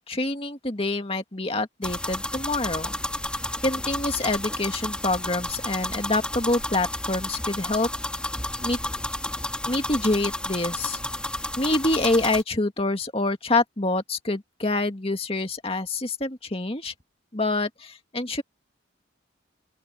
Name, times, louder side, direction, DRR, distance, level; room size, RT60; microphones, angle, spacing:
voice 1, 0.0-3.0 3.6-7.9 8.6-8.8 9.6-11.0 11.6-16.9 17.3-18.4, left 2 dB, 30° left, 2.0 m, -26 dB
sound 1, 1.8-12.4, left 1 dB, 5° left, 2.7 m, -31 dB
open air
head